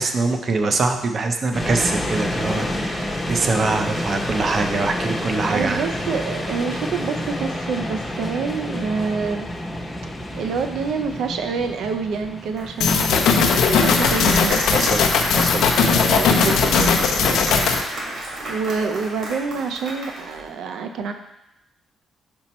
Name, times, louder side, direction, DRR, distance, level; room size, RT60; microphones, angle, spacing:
voice 1, 0.0-5.8 14.7-17.7, right 3 dB, 35° right, 5 dB, 0.5 m, -24 dB
sound 1, 1.5-18.5, left 1 dB, 10° left, 0.7 m, -29 dB
voice 2, 5.5-9.5 10.3-14.7 18.4-21.1, right 5 dB, 85° right, 6 dB, 0.6 m, -27 dB
Applause, 12.6-20.5, right 1 dB, 55° right, 1.8 m, -31 dB
sound 2, 12.8-17.8, left 5 dB, 85° left, 0.6 m, -18 dB
5.3 x 4.4 x 4.2 m, 0.88 s
cardioid pair, 160°, 0 cm